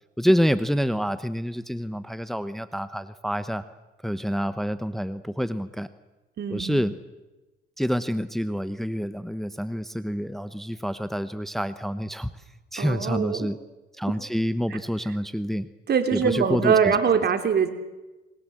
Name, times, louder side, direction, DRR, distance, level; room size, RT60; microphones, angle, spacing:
voice 1, 0.2-3.6 4.0-5.9 6.5-6.9 7.8-12.4 12.7-13.6 13.9-15.7 16.1-17.0, equal, ahead, 12 dB, 1.0 m, -27 dB
voice 2, 6.4-6.8 12.8-13.5 14.7-14.8 15.9-17.7, right 6 dB, 55° right, 7 dB, 3.0 m, -23 dB
27.0 x 21.0 x 7.7 m, 1.1 s
cardioid pair, 90°, 20 cm